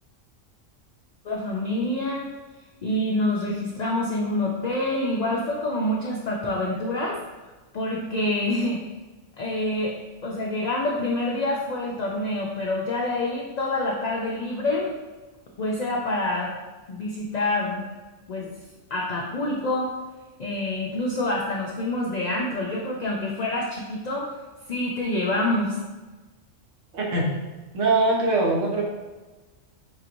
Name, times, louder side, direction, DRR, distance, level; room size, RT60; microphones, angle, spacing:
voice 1, 1.2-2.3 2.8-7.2 7.7-8.8 9.4-9.9 10.2-14.9 15.6-16.5 16.9-17.8 18.3-18.5 18.9-19.9 20.4-24.3 24.7-25.8, left 1 dB, 60° left, -2 dB, 0.4 m, -26 dB
voice 2, 26.9-27.3 27.7-28.8, right 2 dB, 80° right, -2 dB, 1.3 m, -22 dB
5.5 x 2.9 x 2.5 m, 1.2 s
omnidirectional pair, 1.3 m